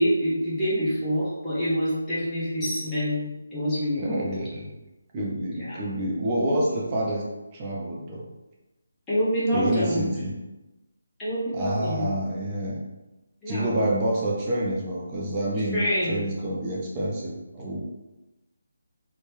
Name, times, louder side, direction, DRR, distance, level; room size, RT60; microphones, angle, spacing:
voice 1, 0.0-4.2 5.6-5.8 9.1-10.1 11.2-12.1 13.4-13.9 15.7-16.2, equal, 15° left, -11 dB, 0.8 m, -26 dB
voice 2, 4.0-4.8 5.1-7.2 7.5-8.2 9.5-10.3 11.5-12.8 13.5-17.8, right 1 dB, 25° right, -4 dB, 0.5 m, -28 dB
2.9 x 2.1 x 3.2 m, 1.0 s
figure-of-eight pair, 150°, 0 cm